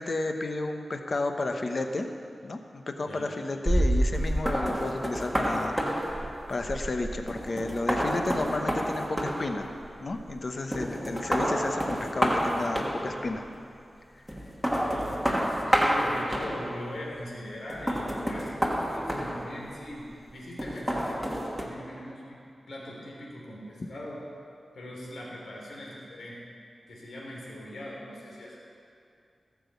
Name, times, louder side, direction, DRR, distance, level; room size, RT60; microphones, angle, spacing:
voice 1, 0.0-2.1 2.4-9.7 10.0-13.4, left 2 dB, 40° left, 5 dB, 1.0 m, -32 dB
sound 1, 3.6-10.4 10.7-13.4 14.3-16.9 17.7-19.9 20.6-21.6, equal, ahead, 1.4 m, -29 dB
voice 2, 14.9-22.4 22.7-24.2 24.7-26.4 26.9-28.6, left 1 dB, 85° left, -4 dB, 3.5 m, -41 dB
16.5 x 7.1 x 8.2 m, 2.4 s
wide cardioid pair, 150°, 0 cm